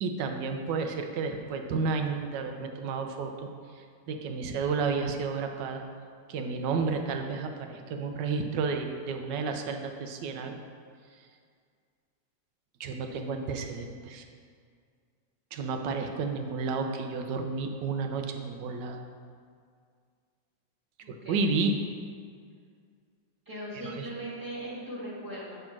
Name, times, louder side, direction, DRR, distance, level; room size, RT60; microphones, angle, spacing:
voice 1, 0.0-5.8 6.3-10.6 11.1-11.3 12.8-14.2 15.5-19.0 21.1-21.8 23.8-24.1, right 4 dB, 75° right, 5 dB, 1.3 m, -31 dB
voice 2, 21.0-21.6 23.5-25.7, right 1 dB, 10° right, -6 dB, 1.8 m, -39 dB
8.9 x 3.5 x 5.9 m, 2.1 s
omnidirectional pair, 2.0 m